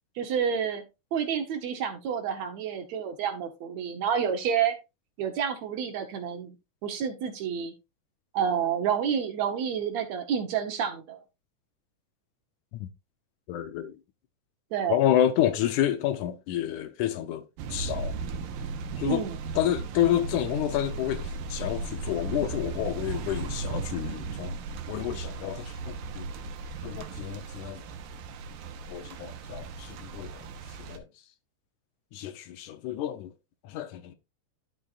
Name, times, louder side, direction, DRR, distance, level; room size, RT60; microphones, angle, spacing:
voice 1, 0.2-0.8 1.1-4.8 5.2-6.6 6.8-7.7 8.3-11.2 14.7-15.0 19.0-19.4, right 7 dB, 65° right, 2.0 m, -29 dB
voice 2, 13.5-13.9 14.9-17.4 17.7-18.2 19.0-19.3 19.6-24.5 24.9-26.3 26.8-27.8 28.9-30.5 30.8-31.0 32.1-33.3 33.6-34.2, left 11 dB, 75° left, 2.0 m, -29 dB
sound 1, 17.6-31.0, right 4 dB, 85° right, 2.6 m, -36 dB
11.5 x 6.8 x 2.4 m
omnidirectional pair, 3.8 m